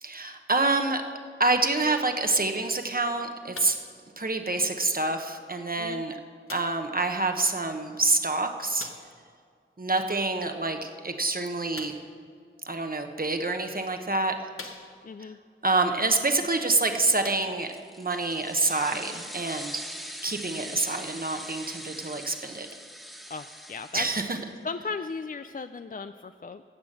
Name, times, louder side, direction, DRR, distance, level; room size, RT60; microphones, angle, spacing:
voice 1, 0.0-1.0 1.4-3.8 4.2-6.1 6.5-8.9 9.8-11.9 12.6-14.3 15.6-17.7 18.0-19.8 20.2-22.7 23.9-24.4, right 3 dB, 45° right, 5 dB, 1.1 m, -27 dB
sound 1, 3.5-3.9 4.8-4.9 6.5-6.9 8.8-9.2 11.7-12.2 13.1-13.2 13.8-13.9 14.5-15.2 16.5-16.6 17.1-17.9 18.7-18.8, left 3 dB, 85° left, 1.1 m, -44 dB
voice 2, 15.0-15.4 23.3-24.1 24.6-26.6, left 4 dB, 40° left, 10 dB, 0.4 m, -36 dB
sound 2, 17.6-24.5, equal, ahead, 1.5 m, -42 dB
14.0 x 8.3 x 6.5 m, 2.1 s
wide cardioid pair, 65°, 21 cm